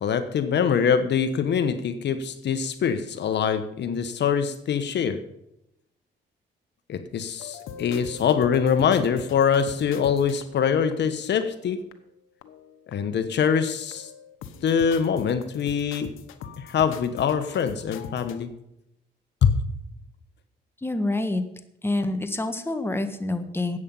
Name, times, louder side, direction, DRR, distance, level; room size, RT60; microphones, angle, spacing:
voice 1, 0.0-5.2 6.9-11.8 12.9-14.1 14.6-16.1 16.6-18.5 19.4-19.5, left 7 dB, 60° left, 10 dB, 1.1 m, -24 dB
sound 1, 7.4-11.4 11.9-12.0 12.4-13.1 13.4-18.4, left 7 dB, 90° left, 1.1 m, -42 dB
voice 2, 20.8-21.4 21.8-23.8, left 2 dB, 10° left, 8 dB, 1.4 m, -27 dB
13.0 x 8.9 x 5.5 m, 0.83 s
cardioid pair, 90°, 20 cm